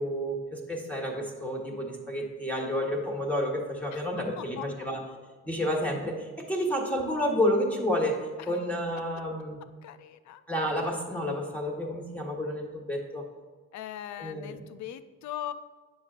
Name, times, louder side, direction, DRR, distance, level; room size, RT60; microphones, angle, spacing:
voice 1, 0.0-5.0 5.4-9.6 10.5-13.2 14.2-14.5, equal, 5° left, -1 dB, 1.4 m, -30 dB
voice 2, 4.4-4.7 8.4-8.6 9.8-10.4 13.7-15.5, left 11 dB, 70° left, 12 dB, 0.5 m, -40 dB
9.0 x 6.4 x 2.5 m, 1.4 s
cardioid pair, 90°, 30 cm